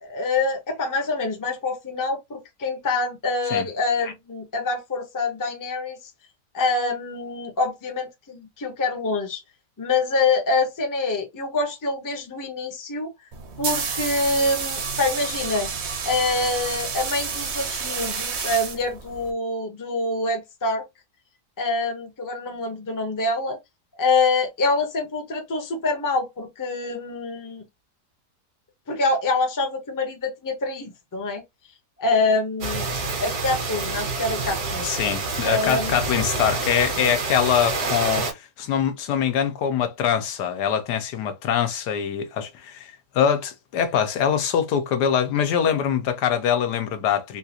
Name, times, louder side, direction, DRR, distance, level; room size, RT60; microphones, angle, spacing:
voice 1, 0.0-6.0 6.5-9.4 9.8-13.1 13.6-15.7 16.0-20.8 21.6-23.6 24.0-27.6 28.9-31.4 32.0-32.8 33.2-34.9 35.4-36.0, left 3 dB, 20° left, 0.5 m, -25 dB
sound 1, 13.3-19.3, right 5 dB, 50° right, 0.9 m, -30 dB
sound 2, 32.6-38.3, right 3 dB, 75° right, 1.7 m, -27 dB
voice 2, 34.8-47.4, left 8 dB, 85° left, 1.3 m, -23 dB
3.8 x 2.4 x 2.8 m
omnidirectional pair, 1.7 m